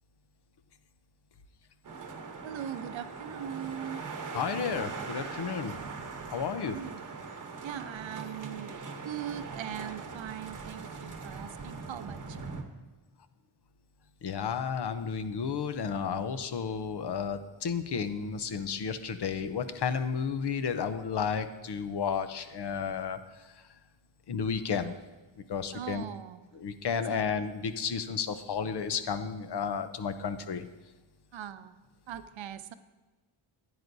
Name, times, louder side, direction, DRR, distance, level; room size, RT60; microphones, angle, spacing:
sound 1, 1.8-12.6, right 4 dB, 40° right, 1.0 m, -41 dB
voice 1, 2.4-4.1 6.7-7.0 7.6-8.8 9.0-12.4 25.7-26.4 27.1-27.2 31.3-31.8 32.1-32.7, right 10 dB, 70° right, 11 dB, 0.6 m, -40 dB
voice 2, 4.3-5.7 6.3-6.8 14.2-23.2 24.3-24.9 25.5-26.0 26.5-30.7, left 6 dB, 55° left, 10 dB, 0.7 m, -32 dB
15.0 x 9.5 x 2.6 m, 1.2 s
wide cardioid pair, 155°, 49 cm